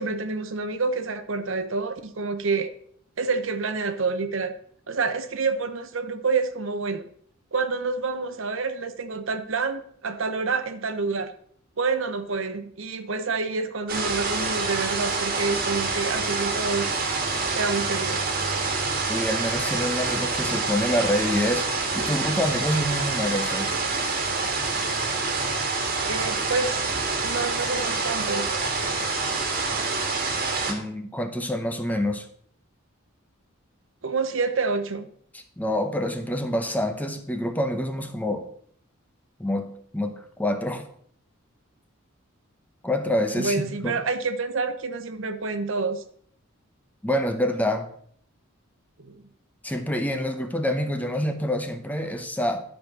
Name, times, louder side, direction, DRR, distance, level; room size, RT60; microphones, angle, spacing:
voice 1, 0.0-2.7 3.2-4.5 4.9-7.1 7.5-11.3 11.8-16.9 17.5-18.2 26.1-26.9 27.2-28.5 34.0-35.1 43.3-46.0 49.0-49.2, right 4 dB, 65° right, 0.8 m, -28 dB
sound 1, 13.9-30.7, right 3 dB, 45° right, 1.7 m, -27 dB
voice 2, 19.1-23.7 30.7-32.3 35.3-38.5 39.4-40.8 42.8-44.0 47.0-47.9 49.6-52.6, left 1 dB, 10° left, 0.8 m, -27 dB
11.5 x 5.0 x 6.0 m
head